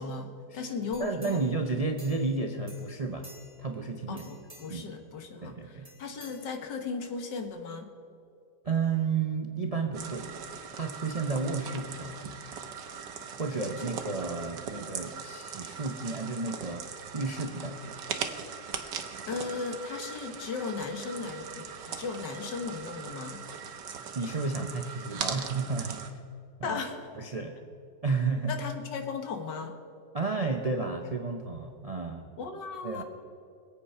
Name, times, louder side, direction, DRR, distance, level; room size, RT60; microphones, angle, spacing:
voice 1, 0.0-1.6 4.1-7.9 13.8-13.9 14.7-14.8 19.3-23.4 26.6-27.1 28.5-29.7 32.4-33.0, left 4 dB, 80° left, 5 dB, 1.9 m, -36 dB
sound 1, 0.9-2.4 2.7-3.7 4.1-4.9 5.8-7.0 7.4-7.5, equal, 20° right, 2.4 m, -53 dB
voice 2, 1.0-3.3 3.6-4.3 4.7-4.9 5.4-5.9 8.6-10.3 10.7-12.4 13.4-18.0 24.1-26.2 26.6-26.8 27.2-27.5 28.0-28.5 30.1-32.3 32.8-33.0, right 4 dB, 45° right, 4 dB, 0.5 m, -32 dB
sound 2, 9.9-26.1, right 7 dB, 80° right, 1.6 m, -40 dB
21.0 x 8.5 x 5.6 m, 2.5 s
omnidirectional pair, 1.9 m